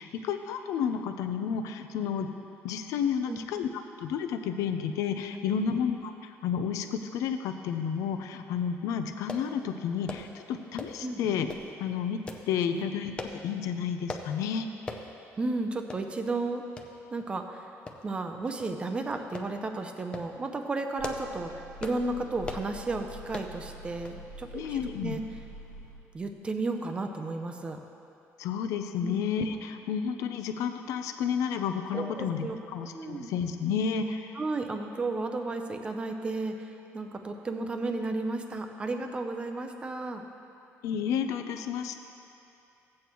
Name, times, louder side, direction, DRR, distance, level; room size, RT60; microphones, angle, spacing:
voice 1, 0.0-2.3 2.6-3.7 4.0-11.5 11.8-14.7 24.5-25.2 28.4-34.4 40.8-42.0, left 7 dB, 85° left, 7 dB, 0.6 m, -31 dB
sound 1, 9.3-9.5 10.1-10.3 10.8-11.0 11.5-11.7 12.3-12.5 13.2-13.4 14.1-14.3 14.9-15.1 15.4-15.5 15.9-16.0 16.8-16.9 17.9-18.2 18.6-18.7 19.3-19.5 20.0-20.3 20.8-21.3 21.8-22.0 22.4-22.7 23.3-23.5 24.0-24.2 24.5-24.6, left 3 dB, 20° left, 0.6 m, -39 dB
voice 2, 15.4-16.6 17.1-17.7 18.0-25.2 26.1-27.8 29.0-29.2 31.9-32.6 32.9-33.3 34.4-40.2, right 3 dB, 20° right, 5 dB, 0.6 m, -33 dB
sound 2, 21.0-26.3, right 1 dB, 65° left, 1.2 m, -46 dB
15.0 x 8.5 x 3.1 m, 2.7 s
cardioid pair, 155°, 5 cm